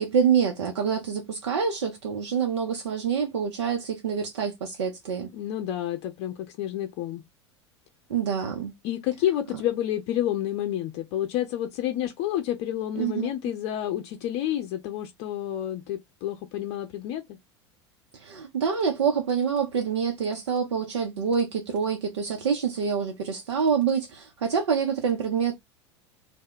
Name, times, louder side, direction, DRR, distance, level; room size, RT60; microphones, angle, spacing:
voice 1, 0.0-5.3 8.1-8.7 13.0-13.3 18.2-25.5, right 6 dB, 70° right, 0.6 m, -26 dB
voice 2, 5.3-7.2 8.8-17.4, left 12 dB, 50° left, 0.5 m, -29 dB
2.2 x 2.1 x 3.5 m
figure-of-eight pair, 80°, 15 cm